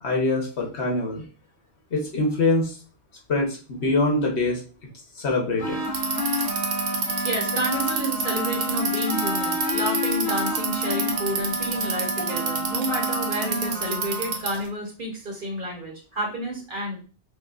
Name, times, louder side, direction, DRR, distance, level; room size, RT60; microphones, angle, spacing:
voice 1, 0.0-1.2 1.9-2.8 3.3-4.6 5.2-5.8, left 2 dB, 75° left, 0 dB, 1.4 m, -24 dB
sound 1, 5.6-14.4, left 1 dB, 35° left, 1.9 m, -29 dB
Bicycle, 5.8-14.7, right 5 dB, 75° right, 1.0 m, -28 dB
voice 2, 7.2-17.0, right 1 dB, 50° right, -1 dB, 1.3 m, -30 dB
5.5 x 2.5 x 2.5 m, 0.35 s
omnidirectional pair, 1.1 m